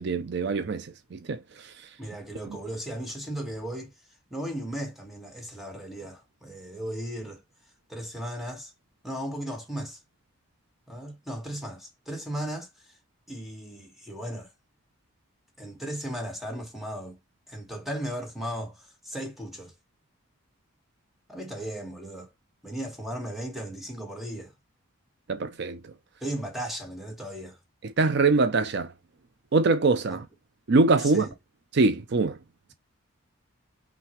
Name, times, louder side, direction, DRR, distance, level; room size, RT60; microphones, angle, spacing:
voice 1, 0.0-1.7 25.3-25.8 27.8-28.9 29.5-30.2 30.7-31.3 31.7-32.4, right 3 dB, 50° right, 0.5 m, -23 dB
voice 2, 2.0-3.9 4.3-7.4 7.9-8.7 9.0-10.0 10.9-12.9 13.3-14.5 15.6-17.2 17.5-19.7 21.3-22.3 22.6-24.5 26.2-27.6 30.1-30.2 31.0-31.3, right 1 dB, ahead, 1.4 m, -36 dB
5.7 x 2.8 x 3.0 m
head